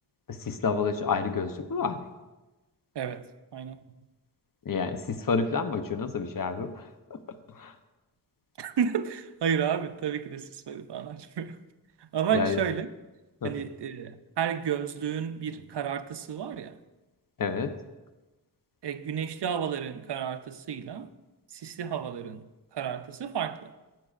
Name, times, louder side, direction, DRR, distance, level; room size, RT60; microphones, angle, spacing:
voice 1, 0.3-2.0 4.6-7.8 12.3-12.6 13.4-13.5 17.4-17.8, left 5 dB, 55° left, 0.7 m, -30 dB
voice 2, 3.5-3.9 8.6-11.6 12.0-12.9 13.4-16.8 18.8-21.1 21.5-22.4 22.7-23.7, right 8 dB, 80° right, 0.6 m, -31 dB
15.0 x 7.5 x 2.4 m
wide cardioid pair, 85°, 40 cm